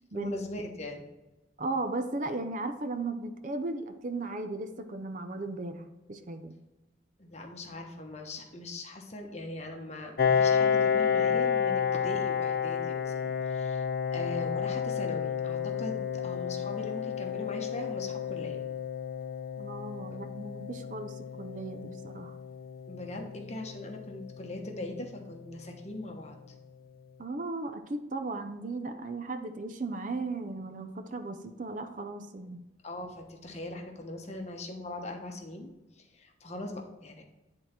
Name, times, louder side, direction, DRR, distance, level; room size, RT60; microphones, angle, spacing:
voice 1, 0.1-1.0 7.2-13.9 14.1-18.6 20.1-20.2 22.9-26.4 32.8-37.2, left 1 dB, 35° left, 2 dB, 1.1 m, -40 dB
voice 2, 1.6-6.5 19.6-22.4 27.2-32.7, right 2 dB, 45° right, 8 dB, 0.5 m, -36 dB
Piano, 10.2-25.5, left 7 dB, 55° left, 0.3 m, -31 dB
10.0 x 3.8 x 4.4 m, 1.0 s
head